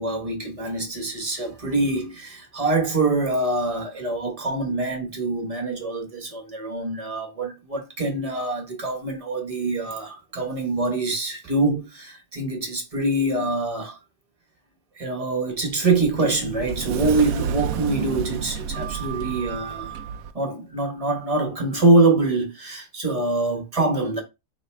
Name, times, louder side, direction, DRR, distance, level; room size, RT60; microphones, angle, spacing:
voice 1, 0.0-14.0 15.0-20.0 20.3-24.2, right 2 dB, 25° right, 1.0 m, -24 dB
Sliding door, 15.5-20.3, right 8 dB, 70° right, 0.9 m, -30 dB
4.5 x 3.0 x 3.3 m
omnidirectional pair, 1.7 m